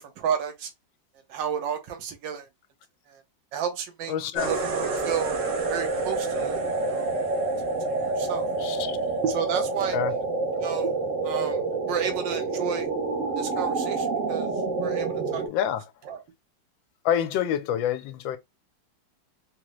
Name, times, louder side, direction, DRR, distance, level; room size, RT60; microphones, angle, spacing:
voice 1, 0.2-0.7 1.3-2.5 3.1-3.2 3.5-4.1 4.4-5.3 5.7-7.1 7.9-8.5 9.2-10.0 10.5-10.9 11.2-11.6 11.9-12.9 13.4-14.5 14.8-15.4 16.1-16.2, right 8 dB, 75° right, 1.4 m, -31 dB
voice 2, 4.1-4.5 8.6-9.0 9.9-10.1 15.5-15.9 17.0-18.4, left 10 dB, 90° left, 1.3 m, -27 dB
sound 1, 4.4-15.5, right 3 dB, 55° right, 1.0 m, -28 dB
3.8 x 2.0 x 2.9 m
omnidirectional pair, 2.0 m